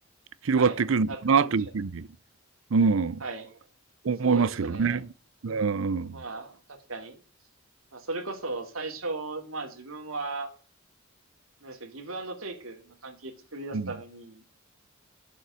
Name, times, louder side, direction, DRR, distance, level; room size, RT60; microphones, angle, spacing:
voice 1, 0.4-2.1 2.7-3.2 4.0-5.0 5.4-6.2 13.7-13.8, right 5 dB, 75° right, 0.5 m, -24 dB
voice 2, 1.1-1.6 3.2-3.6 4.2-5.0 6.1-7.2 7.9-10.5 11.6-14.4, right 3 dB, 90° right, 2.5 m, -36 dB
11.0 x 7.0 x 6.2 m
head